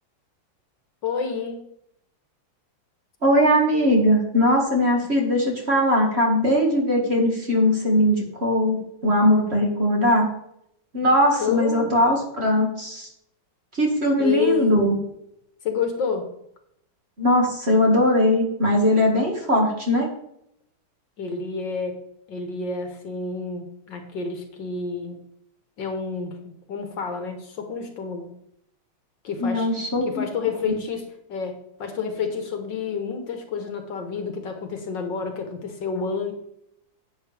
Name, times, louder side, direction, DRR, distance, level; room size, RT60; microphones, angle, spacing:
voice 1, 1.0-1.6 11.4-11.9 14.2-14.8 15.6-16.3 21.2-22.0 22.3-25.2 25.8-28.3 29.2-36.3, left 5 dB, 60° left, 5 dB, 1.8 m, -29 dB
voice 2, 3.2-10.3 10.9-13.1 13.7-15.0 17.2-20.1 29.4-30.3 30.6-30.7, left 1 dB, 30° right, 0 dB, 2.1 m, -20 dB
10.5 x 9.1 x 3.4 m, 0.75 s
omnidirectional pair, 2.3 m